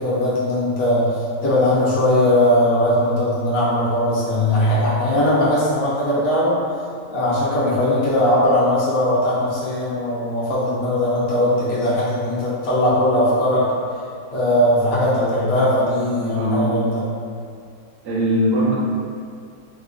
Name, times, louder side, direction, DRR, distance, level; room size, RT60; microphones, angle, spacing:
voice 1, 0.0-6.6 7.1-13.7 14.3-17.0, left 1 dB, 65° left, -9 dB, 1.1 m, -19 dB
voice 2, 16.3-16.7 18.0-18.7, equal, 85° right, -7 dB, 1.3 m, -20 dB
3.9 x 2.1 x 2.5 m, 2.3 s
omnidirectional pair, 1.8 m